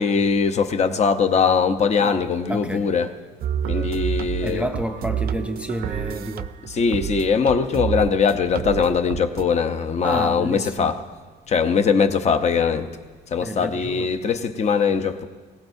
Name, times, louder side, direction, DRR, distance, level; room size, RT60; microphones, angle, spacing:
voice 1, 0.0-3.1 3.7-4.7 6.7-11.0 11.5-12.9 13.3-15.3, left 6 dB, 40° left, 0.8 m, -21 dB
voice 2, 2.5-2.9 4.4-6.5 10.0-11.0 13.4-14.1, right 1 dB, 5° right, 0.4 m, -30 dB
sound 1, 3.4-9.4, right 9 dB, 55° right, 0.5 m, -29 dB
21.0 x 18.5 x 2.7 m
cardioid pair, 165°, 18 cm